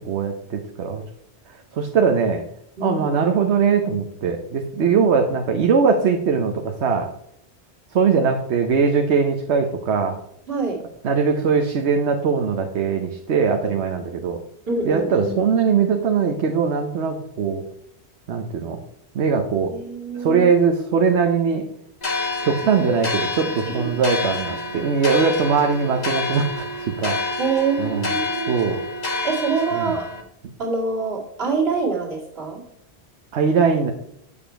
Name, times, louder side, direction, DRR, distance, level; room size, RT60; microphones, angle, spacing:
voice 1, 0.0-1.0 1.7-2.4 2.8-7.1 7.9-10.2 11.0-14.4 14.8-17.6 18.3-18.8 19.1-19.7 20.1-21.6 22.4-27.4 27.8-28.1 28.5-28.8 29.7-30.0 33.3-33.9, right 5 dB, 80° right, 3 dB, 1.1 m, -21 dB
voice 2, 10.5-10.8 14.7-15.3 19.7-20.5 22.8-22.9 23.7-24.0 27.4-28.5 29.2-30.1 30.6-32.6, right 4 dB, 65° right, -3 dB, 2.4 m, -25 dB
sound 1, 22.0-30.2, left 2 dB, 40° left, 1.3 m, -28 dB
7.0 x 7.0 x 4.4 m, 0.76 s
omnidirectional pair, 1.1 m